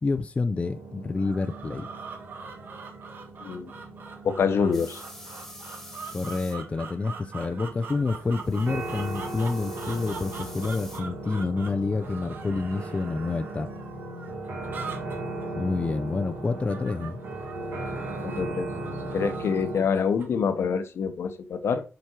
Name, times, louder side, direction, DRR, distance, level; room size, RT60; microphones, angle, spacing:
voice 1, 0.0-1.9 6.1-13.7 15.5-17.2, left 3 dB, 25° left, 0.5 m, -28 dB
sound 1, 0.6-19.8, right 2 dB, 85° right, 2.5 m, -38 dB
sound 2, 1.2-20.4, right 5 dB, 50° right, 1.6 m, -43 dB
voice 2, 3.4-3.7 4.2-5.0 18.2-18.7 19.1-21.8, left 6 dB, 75° left, 1.1 m, -26 dB
sound 3, 4.7-6.6 8.3-11.0, left 1 dB, 5° left, 1.6 m, -46 dB
7.4 x 5.2 x 4.6 m
wide cardioid pair, 145°, 4 cm